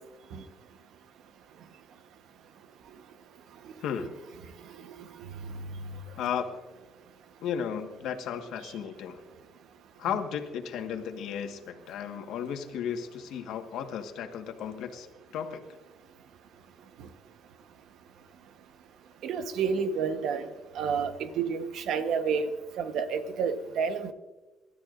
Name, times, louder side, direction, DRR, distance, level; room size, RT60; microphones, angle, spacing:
voice 1, 3.8-4.2 6.2-6.6 7.4-9.2 10.0-15.6, left 8 dB, 80° left, 5 dB, 1.5 m, -34 dB
voice 2, 19.2-20.5 20.7-24.1, right 6 dB, 70° right, 9 dB, 1.1 m, -30 dB
27.5 x 13.0 x 2.6 m, 1.2 s
cardioid pair, 140°, 0 cm